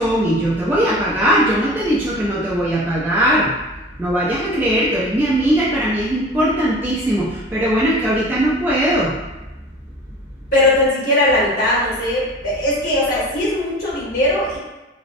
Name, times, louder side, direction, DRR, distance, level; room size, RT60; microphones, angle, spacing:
voice 1, 0.0-3.5 4.0-9.1, right 1 dB, 10° right, -8 dB, 0.3 m, -19 dB
voice 2, 10.5-14.6, left 1 dB, 45° left, -9 dB, 1.0 m, -19 dB
2.5 x 2.0 x 2.5 m, 1.1 s
head